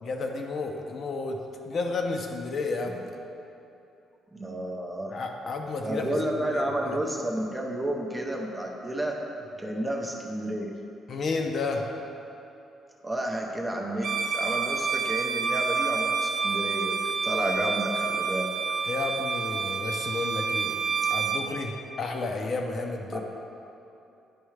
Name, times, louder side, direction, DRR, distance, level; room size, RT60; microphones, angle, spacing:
voice 1, 0.0-3.1 5.1-6.2 6.5-7.0 11.1-11.9 18.8-20.8 21.1-23.2, left 3 dB, 45° left, 3 dB, 0.5 m, -32 dB
voice 2, 4.3-5.2 5.8-9.2 9.6-10.7 13.0-18.5 23.1-23.2, right 1 dB, 10° right, 0 dB, 0.6 m, -31 dB
Bowed string instrument, 14.0-21.5, right 5 dB, 60° right, 0.5 m, -28 dB
10.0 x 4.5 x 3.2 m, 2.8 s
cardioid pair, 160°, 0 cm